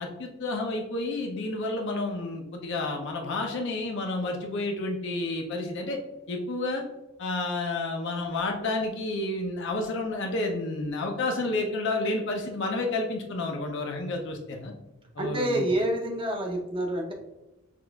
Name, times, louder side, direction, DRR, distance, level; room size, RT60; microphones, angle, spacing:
voice 1, 0.0-6.0 6.3-6.8 7.2-14.7 15.2-15.7, left 2 dB, 55° left, 1 dB, 0.5 m, -30 dB
voice 2, 15.2-17.1, right 1 dB, 25° right, 1 dB, 0.6 m, -28 dB
5.9 x 2.4 x 2.2 m, 1.0 s
head